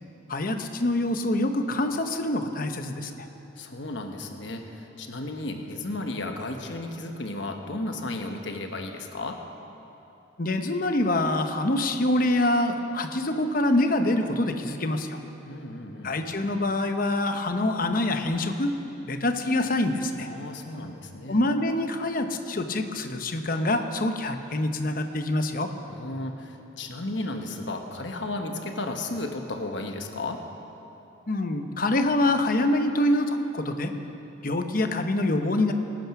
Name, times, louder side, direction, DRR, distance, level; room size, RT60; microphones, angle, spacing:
voice 1, 0.3-3.1 10.4-15.2 16.0-18.7 19.1-20.3 21.3-25.7 31.3-33.9 34.4-35.7, left 1 dB, 45° left, 7 dB, 0.9 m, -25 dB
voice 2, 3.6-9.4 15.5-16.1 20.3-21.4 25.9-30.4, left 2 dB, 65° left, 4 dB, 1.2 m, -34 dB
20.5 x 9.2 x 6.0 m, 3.0 s
head